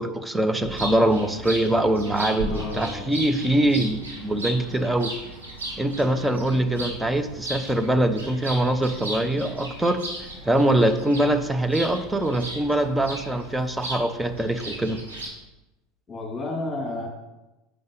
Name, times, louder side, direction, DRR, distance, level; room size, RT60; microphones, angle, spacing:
voice 1, 0.0-5.1 5.8-10.0 10.4-15.0, right 1 dB, 10° right, 8 dB, 0.6 m, -23 dB
sound 1, 0.6-15.3, right 1 dB, 75° right, 2.0 m, -36 dB
voice 2, 2.4-3.2 16.1-17.1, left 2 dB, 20° left, -1 dB, 2.3 m, -32 dB
7.8 x 5.4 x 3.9 m, 1.0 s
figure-of-eight pair, 80°, 0 cm